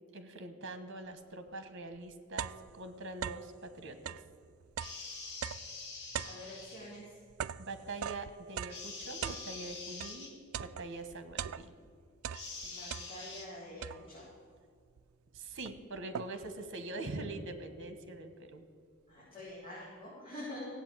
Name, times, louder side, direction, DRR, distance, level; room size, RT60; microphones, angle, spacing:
voice 1, 0.1-4.2 7.6-10.3 10.6-11.7 15.3-18.6, right 2 dB, 60° right, 9 dB, 1.4 m, -44 dB
sound 1, 1.5-1.6 1.9-3.6 3.9-10.2 10.5-11.9 12.2-13.4 13.8-14.3 15.0-15.1 15.3-16.6, right 9 dB, 85° right, 0.4 m, -42 dB
sound 2, 4.8-7.0 8.7-10.3 12.3-13.5, left 4 dB, 55° left, 2.5 m, -45 dB
voice 2, 6.2-7.1 12.6-14.2 19.1-20.7, left 1 dB, 25° left, -10 dB, 4.7 m, -46 dB
16.0 x 8.3 x 8.4 m, 2.1 s
head